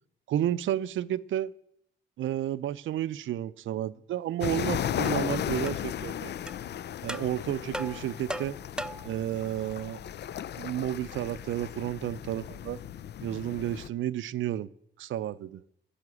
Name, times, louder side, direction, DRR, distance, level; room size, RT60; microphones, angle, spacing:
voice 1, 0.3-1.5 2.2-6.3 7.0-8.6 9.0-10.0 10.6-12.8 13.2-14.7 15.0-15.6, right 12 dB, 85° right, 0.5 m, -31 dB
sound 1, 4.4-13.9, left 10 dB, 60° left, 0.4 m, -35 dB
Tapping Pringles Can A, 4.4-4.5 5.0-5.2 5.7-5.8 6.5-6.6 7.1-7.3 7.7-9.1, right 1 dB, 5° right, 0.4 m, -37 dB
14.0 x 7.1 x 9.6 m
cardioid pair, 90°, 20 cm